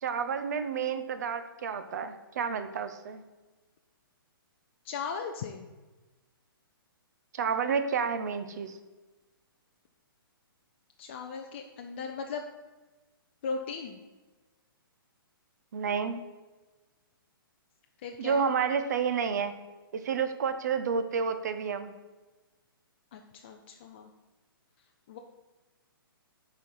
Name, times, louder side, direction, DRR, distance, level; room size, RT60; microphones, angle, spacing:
voice 1, 0.0-3.2 7.3-8.8 15.7-16.2 18.2-19.6 19.9-21.9, right 6 dB, 50° right, 9 dB, 0.6 m, -30 dB
voice 2, 4.8-5.6 11.0-12.4 13.4-14.0 18.0-18.4 23.1-24.1 25.1-25.2, left 5 dB, 30° left, 3 dB, 0.4 m, -37 dB
6.1 x 4.3 x 5.5 m, 1.2 s
hypercardioid pair, 165°, 12 cm